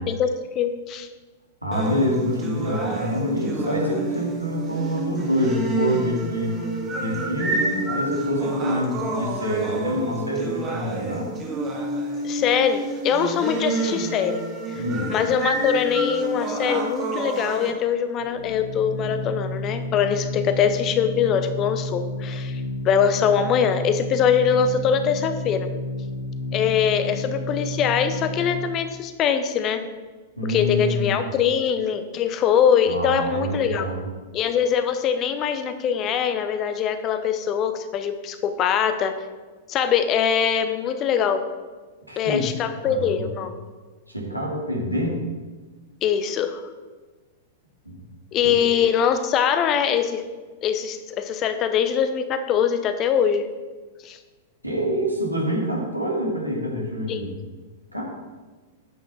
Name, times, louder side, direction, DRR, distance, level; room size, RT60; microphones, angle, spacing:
voice 1, 0.5-1.1 12.2-14.4 14.7-14.8 15.1-25.7 26.5-29.8 30.5-33.9 34.3-39.1 39.7-41.4 42.2-43.5 46.0-46.6 48.3-50.2 50.6-53.4 54.0-54.2 57.1-57.3, left 7 dB, 30° left, 9 dB, 0.8 m, -22 dB
voice 2, 1.6-6.6 7.0-11.3 14.7-15.1 30.4-31.2 32.9-34.1 42.1-42.5 42.8-43.3 44.1-45.2 47.8-48.0 48.4-48.5 54.6-57.3 57.9-58.0, equal, 90° right, -3 dB, 2.6 m, -26 dB
sound 1, 1.7-17.7, right 2 dB, 25° right, 1.8 m, -29 dB
Organ, 18.2-28.9, left 2 dB, 65° left, 1.0 m, -31 dB
9.4 x 6.3 x 5.8 m, 1.3 s
figure-of-eight pair, 100°, 0 cm